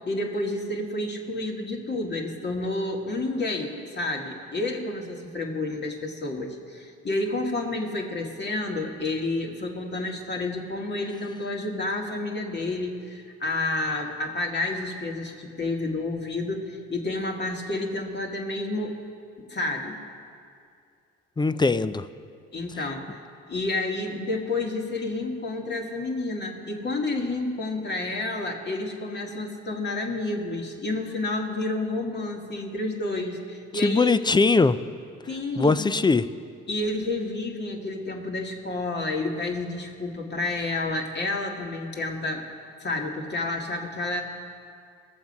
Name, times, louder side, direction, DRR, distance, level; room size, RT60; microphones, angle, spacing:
voice 1, 0.1-19.0 19.4-20.0 22.5-23.2 23.5-34.2 35.3-35.9 36.7-42.4 42.8-44.2, left 2 dB, 35° left, 1 dB, 1.9 m, -30 dB
voice 2, 21.4-22.0 33.8-34.8 35.6-36.3, left 4 dB, 15° left, 14 dB, 0.4 m, -21 dB
18.0 x 7.0 x 5.3 m, 2.3 s
supercardioid pair, 70°, 30 cm